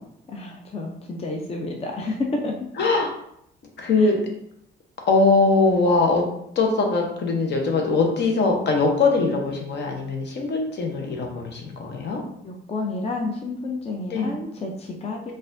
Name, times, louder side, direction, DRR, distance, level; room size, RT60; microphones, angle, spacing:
voice 1, 0.3-2.7 4.0-4.1 12.0-12.1 12.4-15.3, left 2 dB, 30° left, 1 dB, 0.5 m, -30 dB
voice 2, 2.8-3.1 3.8-4.2 5.1-6.2 6.6-12.2 14.1-14.3, left 3 dB, 60° left, 2 dB, 0.8 m, -21 dB
3.9 x 2.5 x 2.6 m, 0.73 s
cardioid pair, 90°, 20 cm